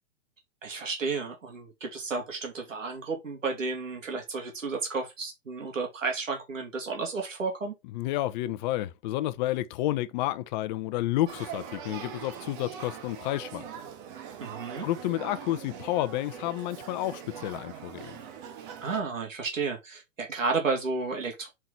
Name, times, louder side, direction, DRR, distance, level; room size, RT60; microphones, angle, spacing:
voice 1, 0.6-7.7 14.4-14.9 18.8-21.5, right 4 dB, 85° right, 2.6 m, -32 dB
voice 2, 7.9-13.6 14.8-18.2, left 15 dB, 35° left, 0.8 m, -30 dB
Male speech man speaking / Child speech kid speaking / Conversation, 11.3-19.0, right 8 dB, 40° right, 1.7 m, -42 dB
5.8 x 4.9 x 4.1 m
hypercardioid pair, 125°, 38 cm